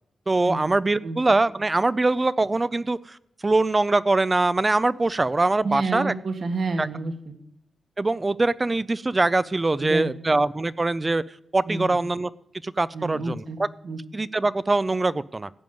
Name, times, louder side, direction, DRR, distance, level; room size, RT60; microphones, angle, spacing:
voice 1, 0.3-3.2 3.4-6.1 6.8-6.9 8.0-11.2 11.5-12.3 12.6-13.7 14.1-15.5, right 2 dB, 25° right, 0.4 m, -23 dB
voice 2, 5.6-7.4 9.8-10.2 11.7-12.0 12.9-13.6 13.8-14.0, right 3 dB, 60° right, 1.5 m, -29 dB
15.5 x 5.3 x 9.2 m
wide cardioid pair, 120°, 0 cm